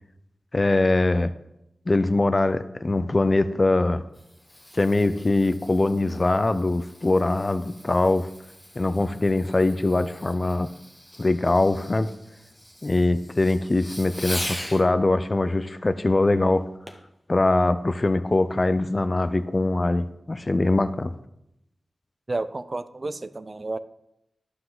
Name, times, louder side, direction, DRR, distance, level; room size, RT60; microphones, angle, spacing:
voice 1, 0.5-1.3 1.9-4.0 4.7-8.3 8.8-10.7 11.2-12.1 12.8-16.6 17.3-21.1, left 2 dB, 40° left, 12 dB, 0.5 m, -22 dB
Fireworks, 3.9-14.9 16.9-17.1 17.7-17.8, left 1 dB, 10° left, 1.2 m, -41 dB
voice 2, 22.3-23.8, right 2 dB, 45° right, 13 dB, 0.5 m, -31 dB
11.5 x 5.6 x 3.9 m, 0.83 s
cardioid pair, 45°, 0 cm